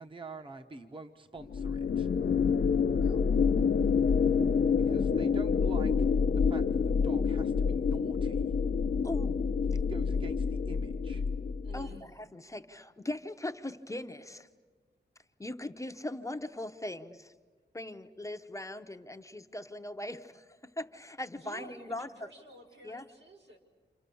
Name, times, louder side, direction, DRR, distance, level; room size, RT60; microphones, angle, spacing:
voice 1, 0.0-2.1 4.9-8.5 9.9-11.2, right 3 dB, 30° right, 6 dB, 1.0 m, -46 dB
sound 1, 1.5-12.0, left 6 dB, 65° left, 0.8 m, -27 dB
voice 2, 9.0-9.4 11.7-11.9 12.2-14.5 15.4-17.3 17.7-22.1 22.8-23.0, left 1 dB, 15° left, 7 dB, 0.8 m, -40 dB
voice 3, 11.6-12.1 21.3-23.6, right 2 dB, 80° right, 0 dB, 5.0 m, -51 dB
30.0 x 27.5 x 7.0 m, 1.4 s
wide cardioid pair, 155°, 18 cm